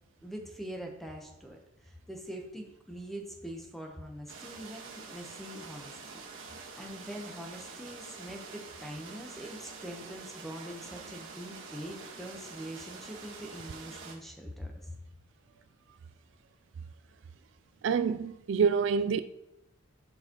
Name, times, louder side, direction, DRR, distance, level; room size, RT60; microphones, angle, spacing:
voice 1, 0.2-5.9 6.3-15.0, equal, ahead, 0.9 m, -43 dB
sound 1, 4.3-14.2, right 4 dB, 85° right, 1.5 m, -46 dB
voice 2, 17.8-19.2, right 6 dB, 65° right, 0.3 m, -27 dB
11.0 x 4.7 x 3.0 m
head